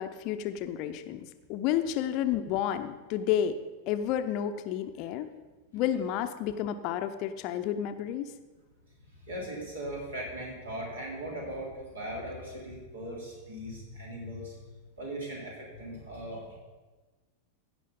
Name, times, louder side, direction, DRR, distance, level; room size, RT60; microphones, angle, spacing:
voice 1, 0.0-3.6 3.9-5.3 5.7-8.3, left 10 dB, 40° left, 10 dB, 0.7 m, -31 dB
voice 2, 9.3-14.5 15.0-16.6, right 1 dB, 70° right, -2 dB, 3.7 m, -39 dB
16.0 x 5.7 x 5.4 m, 1.3 s
figure-of-eight pair, 90°, 0 cm